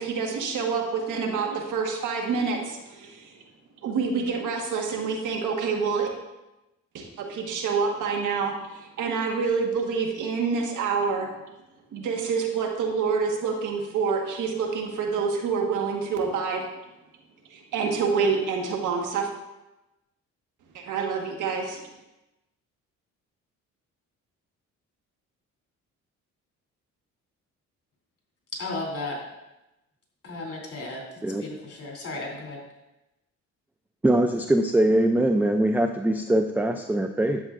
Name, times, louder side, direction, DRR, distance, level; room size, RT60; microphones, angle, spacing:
voice 1, 0.0-3.3 3.8-6.1 6.9-11.3 11.9-16.7 17.5-19.3 20.7-21.8, right 5 dB, 85° right, 2 dB, 1.4 m, -27 dB
voice 2, 28.6-29.2 30.2-31.0 31.4-32.6, left 2 dB, 50° left, -2 dB, 3.0 m, -34 dB
voice 3, 34.0-37.4, right 1 dB, 5° right, 6 dB, 0.4 m, -22 dB
11.0 x 7.4 x 2.5 m, 0.97 s
cardioid pair, 90°, 30 cm